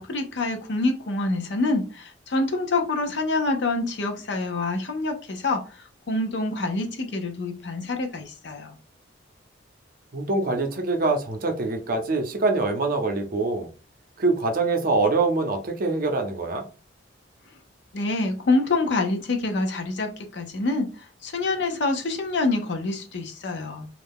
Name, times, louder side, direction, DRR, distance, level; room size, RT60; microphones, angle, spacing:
voice 1, 0.0-8.8 17.9-23.9, left 2 dB, 65° left, 0.6 m, -26 dB
voice 2, 10.1-13.7 14.2-16.7, right 3 dB, 45° right, 0.6 m, -24 dB
2.5 x 2.2 x 3.4 m
head